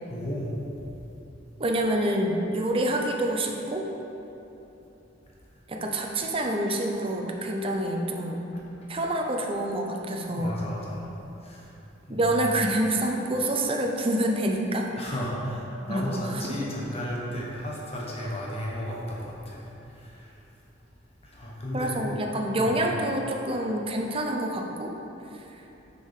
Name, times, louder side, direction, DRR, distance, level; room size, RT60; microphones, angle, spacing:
voice 1, 0.1-0.5 10.3-11.0 11.4-11.6 12.1-12.2 15.0-19.6 20.0-20.3 21.3-21.9 22.6-22.7, equal, 35° left, -4 dB, 0.9 m, -34 dB
voice 2, 1.6-3.8 5.7-8.4 8.9-10.6 12.1-15.1 15.9-16.7 21.7-24.9, right 1 dB, 30° right, 2 dB, 0.6 m, -27 dB
6.4 x 4.7 x 4.9 m, 3.0 s
head